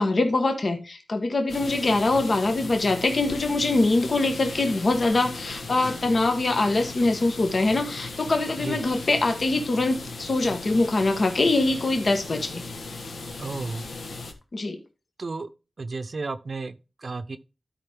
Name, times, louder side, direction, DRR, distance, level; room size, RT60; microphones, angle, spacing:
voice 1, 0.0-12.6 14.5-14.8, left 2 dB, 60° left, 1.6 m, -23 dB
sound 1, 1.5-14.3, left 3 dB, 85° left, 1.6 m, -37 dB
voice 2, 13.4-13.8 15.2-15.5 15.8-17.4, right 3 dB, 60° right, 0.7 m, -33 dB
12.5 x 5.2 x 3.7 m
wide cardioid pair, 65°, 0 cm